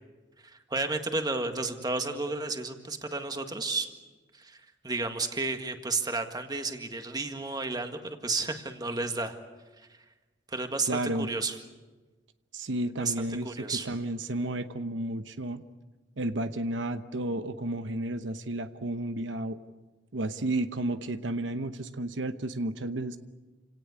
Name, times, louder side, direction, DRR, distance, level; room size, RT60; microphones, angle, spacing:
voice 1, 0.4-3.9 4.3-9.4 10.5-11.6 13.0-13.1 13.4-13.9, right 3 dB, 20° right, 6 dB, 1.8 m, -32 dB
voice 2, 10.9-11.3 12.5-15.6 16.2-19.6 20.1-23.2, right 1 dB, 85° right, 10 dB, 1.0 m, -32 dB
28.5 x 18.0 x 8.5 m, 1.3 s
head